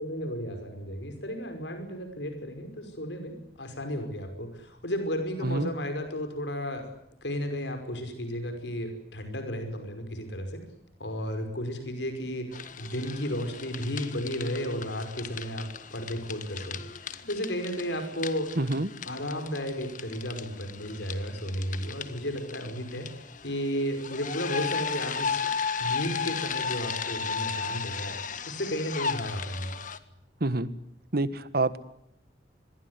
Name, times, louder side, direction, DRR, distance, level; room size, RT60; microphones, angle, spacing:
voice 1, 0.0-6.9 7.2-10.6 11.0-18.5 19.0-25.5 25.8-29.7, equal, 80° left, 7 dB, 5.5 m, -33 dB
sound 1, 12.5-30.0, left 6 dB, 45° left, 1.7 m, -35 dB
voice 2, 18.6-18.9 30.4-30.7 31.1-31.8, right 2 dB, 55° right, 14 dB, 1.6 m, -27 dB
26.5 x 22.0 x 9.7 m, 0.77 s
head